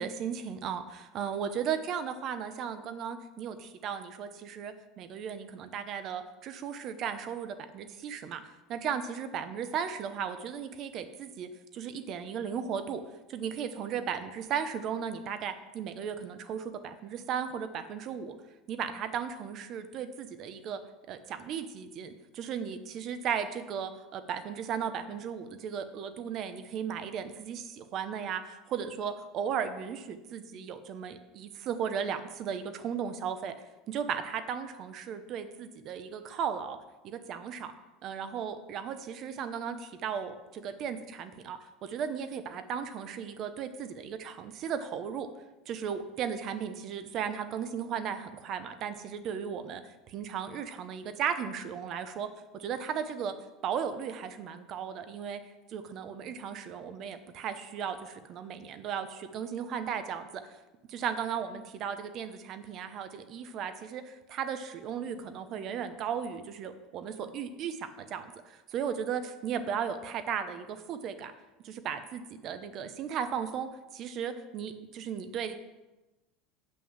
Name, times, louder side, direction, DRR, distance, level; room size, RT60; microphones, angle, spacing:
voice 1, 0.0-8.4 8.7-13.0 13.3-18.4 18.7-20.8 21.1-33.5 33.9-36.8 37.0-37.7 38.0-45.3 45.7-49.8 50.1-52.3 52.5-53.3 53.6-55.4 55.7-60.4 60.9-71.3 71.6-75.6, right 7 dB, 35° right, 10 dB, 0.8 m, -36 dB
7.7 x 6.2 x 7.2 m, 1.1 s
cardioid pair, 165°, 0 cm